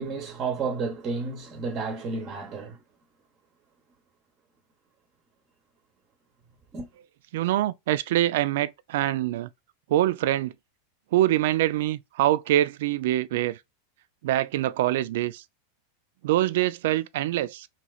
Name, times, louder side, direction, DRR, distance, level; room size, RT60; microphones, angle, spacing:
voice 1, 0.0-2.8 6.7-6.9, right 4 dB, 25° right, 0.8 m, -31 dB
voice 2, 7.3-9.5 9.9-10.5 11.1-13.6 14.2-15.4 16.2-17.7, right 14 dB, 70° right, 0.3 m, -24 dB
3.0 x 2.8 x 2.3 m
supercardioid pair, 150°, 0 cm